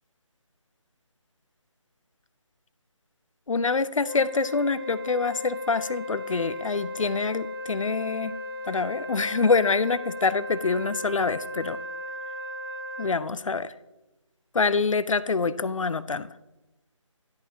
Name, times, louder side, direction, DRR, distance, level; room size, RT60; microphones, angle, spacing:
voice 1, 3.5-8.3 8.7-11.8 13.0-13.7 14.5-16.3, left 4 dB, 75° left, 15 dB, 0.4 m, -25 dB
Wind instrument woodwind instrument, 4.0-13.2, left 1 dB, 45° right, 0.9 m, -36 dB
10.5 x 8.4 x 2.8 m, 1.0 s
figure-of-eight pair, 160°, 17 cm